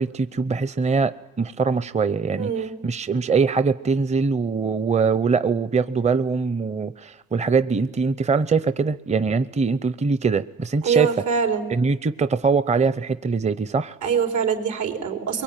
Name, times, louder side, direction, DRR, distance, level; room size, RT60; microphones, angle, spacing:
voice 1, 0.0-11.1 11.7-14.0, right 5 dB, 20° right, 13 dB, 0.8 m, -22 dB
voice 2, 2.4-2.7 10.8-11.7 14.0-15.4, right 6 dB, 75° right, 3 dB, 4.9 m, -24 dB
23.5 x 23.0 x 9.2 m, 1.1 s
cardioid pair, 90°, 30 cm